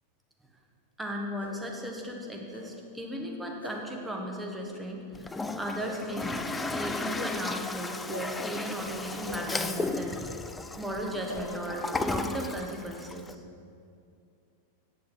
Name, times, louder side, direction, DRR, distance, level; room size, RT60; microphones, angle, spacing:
voice 1, 1.0-10.2 10.8-13.4, equal, 5° right, 0 dB, 1.1 m, -36 dB
sound 1, 1.4-1.5 2.5-2.6 3.6-3.7 4.6-4.7 5.8-5.9 7.1-7.3 8.1-8.2 9.2-9.4 10.2-10.4 11.2-11.4, left 1 dB, 85° left, 1.1 m, -42 dB
Toilet flush, 5.1-13.3, left 3 dB, 10° left, 0.3 m, -35 dB
8.8 x 6.5 x 4.3 m, 2.4 s
figure-of-eight pair, 90°, 0 cm